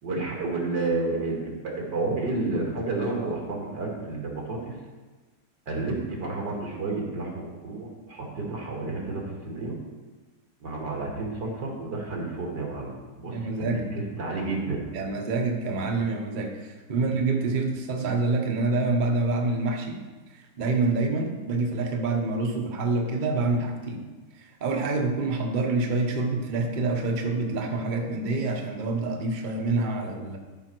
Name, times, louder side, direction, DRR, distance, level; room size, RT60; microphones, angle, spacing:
voice 1, 0.0-4.8 5.7-9.8 10.6-14.8 17.0-17.1, right 3 dB, 85° right, -1 dB, 2.6 m, -31 dB
voice 2, 13.2-13.8 14.9-20.0 20.3-24.0 24.3-30.4, right 3 dB, 35° right, 2 dB, 0.9 m, -27 dB
13.0 x 5.5 x 4.5 m, 1.3 s
omnidirectional pair, 1.8 m